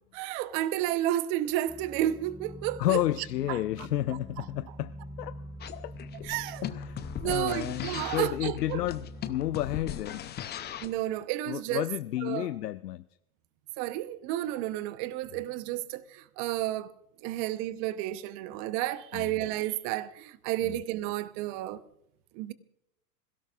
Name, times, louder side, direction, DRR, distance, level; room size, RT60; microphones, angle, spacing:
voice 1, 0.1-3.0 3.5-3.6 4.4-4.5 6.2-6.7 7.2-8.8 10.8-11.8 12.2-12.5 13.8-16.9 17.2-21.8 22.3-22.5, right 14 dB, 45° right, 1.0 m, -31 dB
sound 1, 1.7-10.0, equal, 10° right, 3.1 m, -44 dB
voice 2, 2.8-5.4 5.7-5.9 6.6-10.4 11.5-13.0 19.1-19.3 20.6-20.7, left 14 dB, 85° left, 0.6 m, -31 dB
sound 2, 5.6-11.0, left 10 dB, 20° left, 0.7 m, -39 dB
26.5 x 17.0 x 2.5 m
hypercardioid pair, 105°, 46 cm